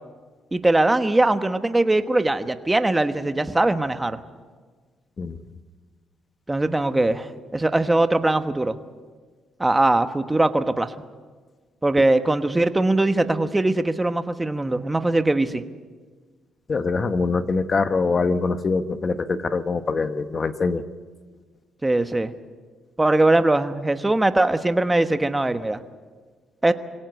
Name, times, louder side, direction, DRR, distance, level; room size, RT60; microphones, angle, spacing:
voice 1, 0.5-4.2 6.5-8.8 9.6-10.9 11.8-15.6 21.8-22.3 23.0-25.8 26.6-26.7, right 2 dB, 15° right, 9 dB, 1.2 m, -21 dB
voice 2, 16.7-20.8, left 4 dB, 40° left, 10 dB, 1.1 m, -23 dB
23.5 x 17.5 x 8.3 m, 1.5 s
cardioid pair, 90°, 0 cm